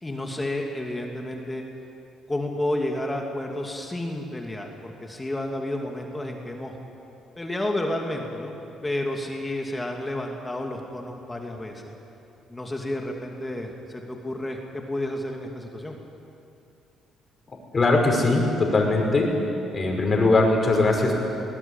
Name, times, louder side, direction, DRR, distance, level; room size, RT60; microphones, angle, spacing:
voice 1, 0.0-1.6 2.3-6.8 7.4-8.5 8.8-11.9 12.5-16.0, left 1 dB, 15° left, 1 dB, 2.5 m, -31 dB
voice 2, 17.7-19.3 19.7-21.2, left 2 dB, 30° left, 1 dB, 5.7 m, -20 dB
21.5 x 19.5 x 8.9 m, 2.8 s
cardioid pair, 95°, 0 cm